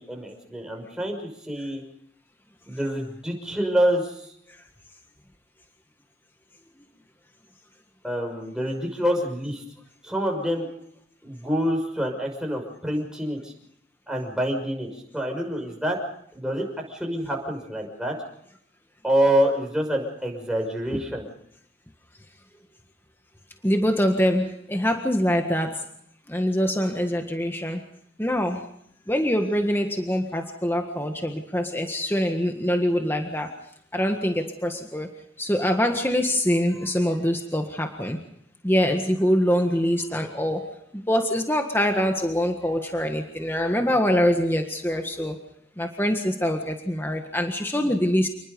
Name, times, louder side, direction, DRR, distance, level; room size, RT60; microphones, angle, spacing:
voice 1, 0.0-1.8 2.7-4.3 8.0-9.6 10.0-10.7 11.2-13.5 14.1-14.9 15.1-16.0 16.3-18.1 19.0-21.2, equal, 5° right, 0 dB, 6.1 m, -26 dB
voice 2, 23.6-25.9 26.3-27.8 28.2-28.6 29.1-33.6 33.9-35.1 35.4-38.2 38.6-45.4 45.8-48.3, equal, 10° left, 4 dB, 1.6 m, -24 dB
28.5 x 21.0 x 5.3 m, 0.70 s
head